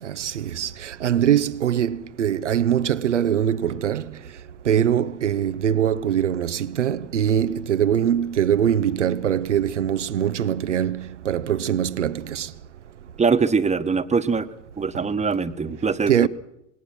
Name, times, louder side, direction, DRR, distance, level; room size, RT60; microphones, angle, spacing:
voice 1, 0.0-4.4 4.6-12.5 16.1-16.3, right 9 dB, 85° right, 0.8 m, -22 dB
voice 2, 13.2-14.5 14.8-16.3, right 5 dB, 20° right, 1.5 m, -22 dB
26.0 x 21.0 x 6.1 m
hypercardioid pair, 70°, 35 cm